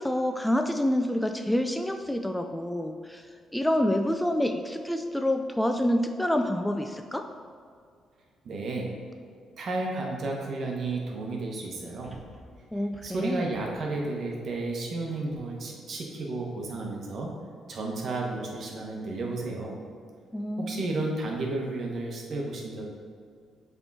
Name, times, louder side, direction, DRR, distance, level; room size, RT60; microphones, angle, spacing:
voice 1, 0.0-3.3 3.5-7.3 12.7-13.4 20.3-20.8, left 1 dB, 5° left, 5 dB, 0.3 m, -27 dB
voice 2, 8.4-9.0 9.6-12.2 13.0-17.4 17.7-19.8 20.6-22.8, right 2 dB, 55° right, 0 dB, 1.2 m, -32 dB
sound 1, 12.0-15.4 15.9-16.0, equal, 20° right, 0.9 m, -54 dB
6.9 x 3.6 x 4.2 m, 2.2 s
cardioid pair, 90°, 0 cm